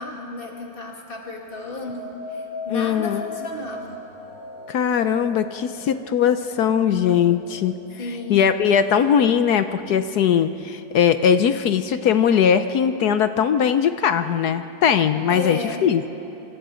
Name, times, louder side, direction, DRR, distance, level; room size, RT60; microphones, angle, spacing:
voice 1, 0.0-4.1 8.0-8.6 15.3-16.0, left 2 dB, 30° left, 0 dB, 2.6 m, -33 dB
sound 1, 1.3-10.5 11.0-11.5, left 4 dB, 45° right, 5.0 m, -39 dB
voice 2, 2.7-3.3 4.7-7.7 8.3-16.0, left 8 dB, 65° left, 10 dB, 1.1 m, -20 dB
26.0 x 26.0 x 5.1 m, 3.0 s
omnidirectional pair, 2.0 m